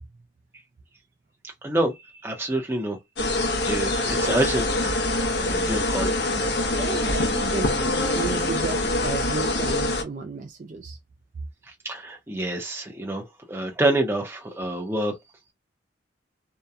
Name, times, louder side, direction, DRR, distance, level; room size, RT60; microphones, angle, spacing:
voice 1, 1.6-1.9 2.2-3.0 3.7-4.7 4.9-6.2 11.8-15.1, right 1 dB, 15° right, 0.7 m, -27 dB
sound 1, 3.2-10.0, left 2 dB, 60° left, 0.7 m, -24 dB
voice 2, 6.7-11.0, right 4 dB, 40° right, 0.3 m, -33 dB
2.8 x 2.2 x 2.3 m
head